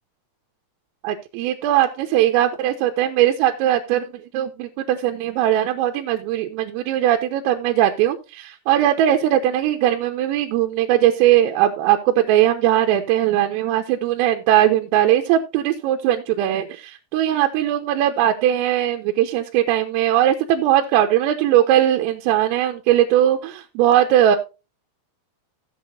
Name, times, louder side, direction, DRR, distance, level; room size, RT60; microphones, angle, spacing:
voice 1, 1.0-4.1 4.3-24.4, right 12 dB, 85° right, 4 dB, 3.6 m, -19 dB
15.5 x 7.9 x 2.6 m, 0.29 s
omnidirectional pair, 5.9 m